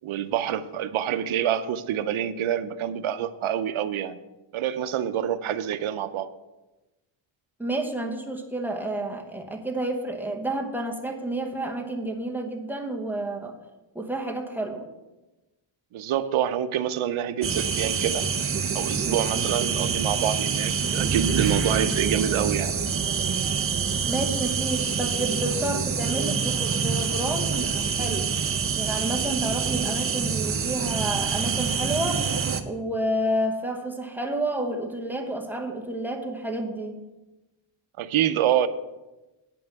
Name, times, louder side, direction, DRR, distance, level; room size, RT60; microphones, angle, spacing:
voice 1, 0.0-4.2 4.5-6.3 15.9-18.2 18.7-22.7 38.0-38.7, right 10 dB, 80° right, 11 dB, 0.7 m, -26 dB
voice 2, 7.6-13.5 13.9-14.9 24.1-28.3 28.8-32.3 32.6-37.0, right 1 dB, 5° right, 1 dB, 1.0 m, -30 dB
sound 1, 17.4-32.6, right 6 dB, 30° right, 0.5 m, -26 dB
9.2 x 5.4 x 8.0 m, 1.1 s
wide cardioid pair, 165°, 48 cm